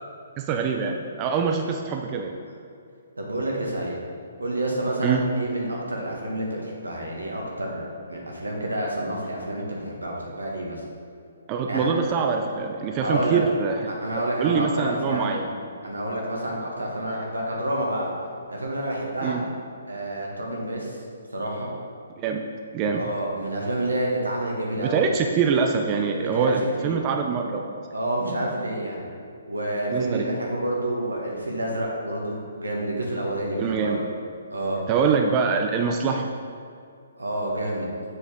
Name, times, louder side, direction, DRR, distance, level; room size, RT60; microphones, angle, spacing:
voice 1, 0.4-2.3 5.0-5.3 11.5-14.0 14.4-15.4 19.2-19.5 22.2-22.4 22.7-23.0 24.8-27.8 29.9-30.3 33.6-34.0 34.9-36.3, right 5 dB, 30° right, 3 dB, 0.5 m, -24 dB
voice 2, 3.2-4.0 4.4-10.8 11.7-11.9 13.0-13.4 13.9-15.4 15.8-18.1 18.5-19.4 19.8-21.0 21.3-21.7 22.9-25.1 26.1-26.5 26.8-27.0 27.9-29.0 29.5-34.0 34.5-34.9 37.1-37.9, right 1 dB, 90° right, -2 dB, 1.7 m, -28 dB
7.1 x 6.5 x 3.7 m, 2.3 s
figure-of-eight pair, 135°, 0 cm